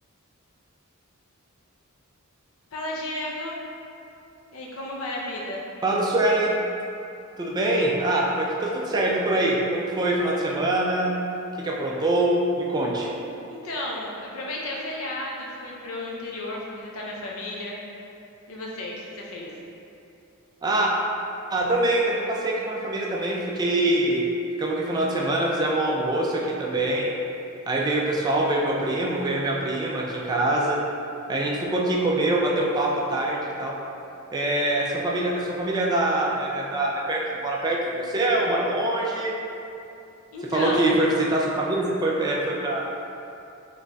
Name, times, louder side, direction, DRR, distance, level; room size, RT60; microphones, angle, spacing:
voice 1, 2.7-3.6 4.5-5.6 13.5-17.8 18.5-19.5 40.3-40.9, left 1 dB, 75° left, -3 dB, 0.6 m, -33 dB
voice 2, 5.8-6.6 7.4-11.1 11.6-13.1 20.6-20.9 21.5-24.3 24.6-27.1 27.7-30.8 31.3-33.8 34.3-39.3 40.5-42.8, right 1 dB, 20° right, -3 dB, 0.3 m, -24 dB
3.8 x 3.1 x 2.3 m, 2.7 s
head